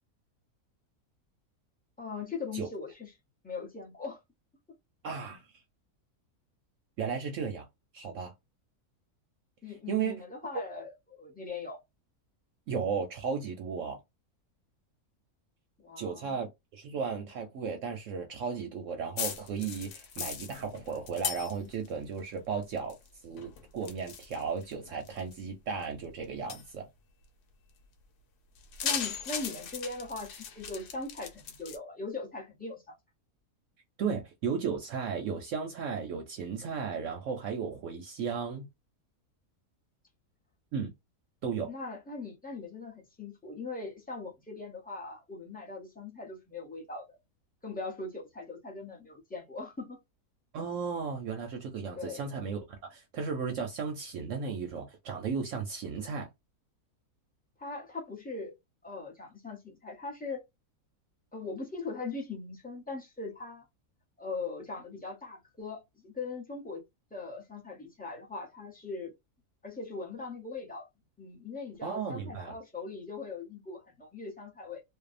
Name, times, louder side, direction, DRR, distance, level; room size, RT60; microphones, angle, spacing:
voice 1, 2.0-3.1 3.4-4.2 9.6-11.8 15.8-16.4 28.8-32.9 41.7-47.2 47.6-50.0 51.9-52.2 57.6-58.5 58.8-60.4 61.3-63.6 64.2-66.8 67.1-69.1 69.6-70.9 71.2-74.8, left 3 dB, 10° left, 0.4 m, -40 dB
voice 2, 5.0-5.5 7.0-7.7 7.9-8.3 9.9-10.2 12.7-14.0 16.0-23.0 23.2-26.9 34.0-38.7 40.7-40.9 41.4-41.7 50.5-56.3 71.8-72.5, right 6 dB, 65° right, 0.8 m, -35 dB
sound 1, 19.2-21.9 22.2-23.1 23.4-25.3 25.8-25.9 26.5-26.7 28.6-31.8, left 7 dB, 85° left, 1.2 m, -38 dB
2.6 x 2.1 x 2.4 m
omnidirectional pair, 1.6 m